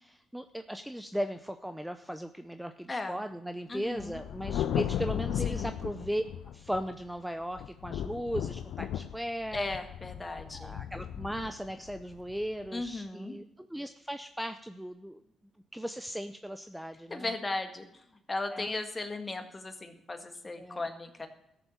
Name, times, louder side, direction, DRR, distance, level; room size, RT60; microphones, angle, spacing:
voice 1, 0.0-6.2 6.5-9.7 10.5-15.2 15.7-17.3 18.5-18.7 20.6-20.8, equal, 5° right, 9 dB, 0.6 m, -37 dB
voice 2, 2.9-3.2 3.7-4.2 5.4-5.7 9.5-10.8 12.7-13.3 17.1-18.0 18.3-21.3, left 2 dB, 25° left, 6 dB, 1.7 m, -36 dB
Thunder, 4.0-7.1 7.6-12.9, left 10 dB, 80° left, 0.5 m, -36 dB
13.5 x 7.0 x 7.2 m, 0.79 s
cardioid pair, 75°, 0 cm